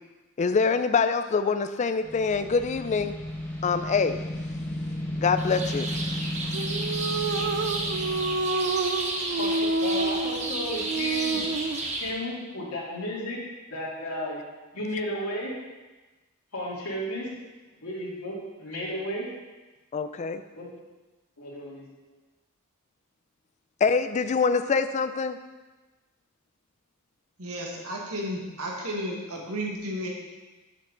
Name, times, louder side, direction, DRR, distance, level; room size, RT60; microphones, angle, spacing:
voice 1, 0.4-3.1 3.6-4.2 5.2-5.9 19.9-20.4 23.8-25.4, left 5 dB, 35° left, 10 dB, 0.3 m, -25 dB
sound 1, 2.0-8.4, left 1 dB, 10° left, 1.1 m, -33 dB
sound 2, 5.4-12.1, right 2 dB, 30° right, 0.9 m, -33 dB
sound 3, 6.5-11.9, right 3 dB, 55° right, 0.4 m, -29 dB
voice 2, 9.4-11.5 12.0-13.4 13.7-14.4 14.7-15.5 16.5-17.3 17.8-19.3 20.5-20.7 21.4-21.8, equal, 85° left, -6 dB, 2.1 m, -33 dB
voice 3, 27.4-30.1, equal, 85° right, -1 dB, 1.6 m, -33 dB
7.4 x 6.7 x 3.8 m, 1.2 s
head